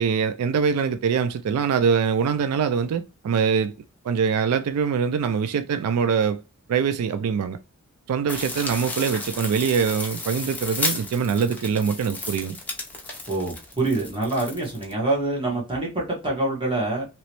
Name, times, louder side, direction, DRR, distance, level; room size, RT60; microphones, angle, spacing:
voice 1, 0.0-3.7 4.0-6.4 6.7-7.6 8.1-12.6, right 6 dB, 90° right, 0.3 m, -23 dB
sound 1, 8.3-14.9, left 2 dB, 5° left, 0.6 m, -33 dB
voice 2, 13.3-17.1, right 2 dB, 25° right, 1.3 m, -25 dB
3.0 x 3.0 x 3.0 m
head